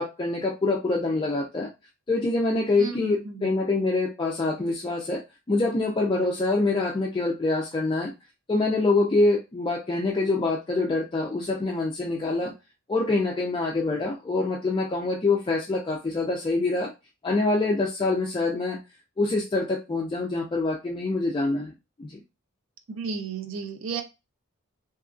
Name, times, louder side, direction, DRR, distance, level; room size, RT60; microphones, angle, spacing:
voice 1, 0.0-1.7 2.1-8.1 8.5-12.5 12.9-16.9 17.2-18.8 19.2-21.7 22.0-22.2, left 2 dB, 20° left, -1 dB, 0.3 m, -25 dB
voice 2, 2.8-3.5 22.9-24.0, right 4 dB, 65° right, 5 dB, 0.5 m, -33 dB
2.9 x 2.4 x 2.4 m, 0.25 s
head